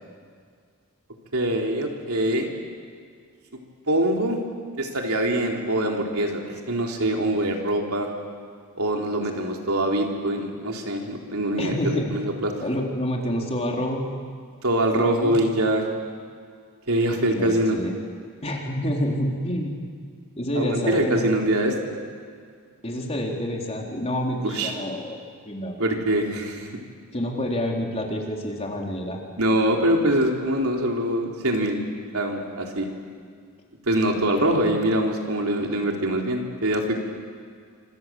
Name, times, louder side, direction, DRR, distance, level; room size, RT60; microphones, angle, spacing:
voice 1, 1.3-2.5 3.9-4.4 4.8-8.1 8.7-12.5 14.6-15.8 16.9-17.8 20.5-21.7 24.4-24.7 25.8-26.7 29.4-31.8 32.1-32.9 33.9-37.0, right 1 dB, 75° right, 1 dB, 3.8 m, -24 dB
voice 2, 11.6-12.1 12.6-14.0 14.9-15.4 17.3-17.9 18.4-19.8 20.4-21.2 22.8-25.2 25.4-25.8 27.1-29.2, equal, 30° left, 0 dB, 4.0 m, -28 dB
28.0 x 26.0 x 7.7 m, 2.1 s
head